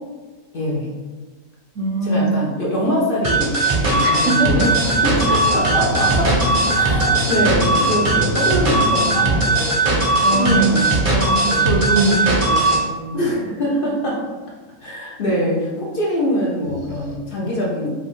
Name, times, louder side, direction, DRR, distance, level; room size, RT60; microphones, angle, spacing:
voice 1, 0.5-0.9 2.0-4.8 5.0-6.4 6.7-10.1 10.3-10.9 11.4-11.8 13.1-14.3 14.8-17.9, equal, 45° left, -4 dB, 0.9 m, -23 dB
voice 2, 1.7-2.3 4.0-4.7 5.3-5.4 10.2-10.8 11.1-13.2, right 2 dB, 65° right, 0 dB, 1.0 m, -22 dB
sound 1, 3.2-12.8, right 2 dB, 30° right, 0.6 m, -18 dB
sound 2, 4.8-9.4 16.6-17.2, left 1 dB, 80° left, 1.3 m, -27 dB
4.9 x 2.6 x 3.8 m, 1.3 s
omnidirectional pair, 1.5 m